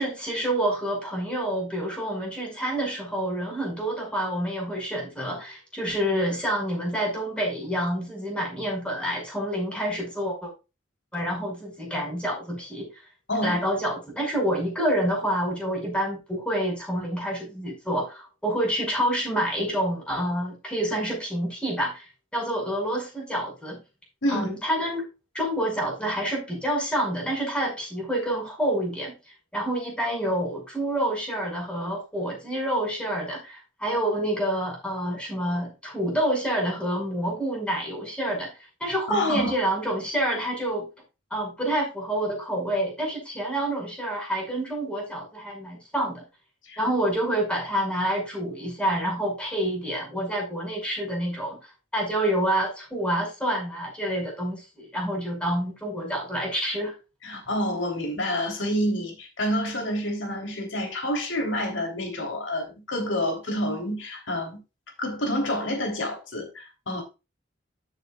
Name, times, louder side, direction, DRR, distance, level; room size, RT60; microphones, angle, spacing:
voice 1, 0.0-10.5 11.1-12.9 13.4-22.1 22.3-23.8 24.3-25.1 25.3-29.2 29.5-38.5 38.8-40.9 41.3-46.2 46.8-51.6 51.9-56.9, right 1 dB, 5° left, 5.5 m, -28 dB
voice 2, 13.3-13.6 24.2-24.5 39.1-39.5 46.7-46.8 57.2-64.6 65.0-67.0, equal, 85° left, 3.4 m, -28 dB
13.5 x 7.3 x 2.4 m
head